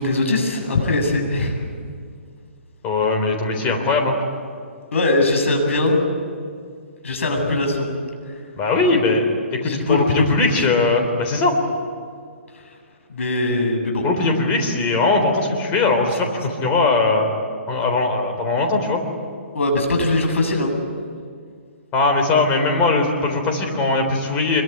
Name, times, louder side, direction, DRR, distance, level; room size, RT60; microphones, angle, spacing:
voice 1, 0.0-1.6 4.9-6.0 7.0-7.9 9.6-10.7 12.5-12.6 13.1-14.1 19.5-20.7, left 2 dB, 75° left, 3 dB, 7.9 m, -21 dB
voice 2, 2.8-4.2 8.6-9.6 9.9-11.5 14.0-17.3 17.7-19.0 21.9-24.6, left 3 dB, 20° left, 3 dB, 3.7 m, -20 dB
25.0 x 23.0 x 9.5 m, 2.1 s
hypercardioid pair, 165°, 7 cm